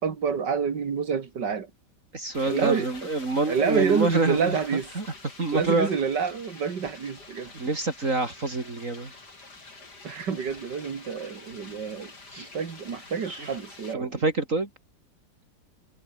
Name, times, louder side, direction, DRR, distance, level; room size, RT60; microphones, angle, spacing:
voice 1, 0.0-1.7 2.5-2.9 3.5-4.9 5.5-7.5 10.0-14.2, right 6 dB, 65° right, 2.6 m, -28 dB
voice 2, 2.1-4.6 4.9-5.0 5.4-5.9 7.5-9.1 12.3-12.5 13.2-13.5 13.9-14.7, right 3 dB, 40° right, 3.3 m, -27 dB
sound 1, 2.3-13.9, left 3 dB, 60° left, 5.1 m, -47 dB
omnidirectional pair, 2.0 m